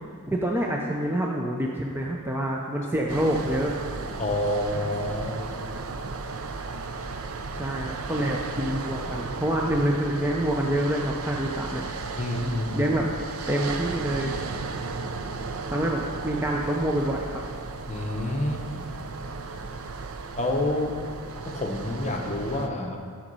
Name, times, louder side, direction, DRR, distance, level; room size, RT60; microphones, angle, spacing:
voice 1, 0.3-3.7 7.5-11.8 12.7-13.0 13.5-14.4 15.7-17.4, right 1 dB, 10° right, -1 dB, 0.5 m, -27 dB
sound 1, 3.1-22.7, right 4 dB, 70° right, 0.6 m, -35 dB
voice 2, 4.2-5.4 12.2-12.9 17.9-18.8 20.4-21.0 21.5-23.0, left 1 dB, 30° left, 2 dB, 0.9 m, -28 dB
11.5 x 5.1 x 5.4 m, 2.1 s
head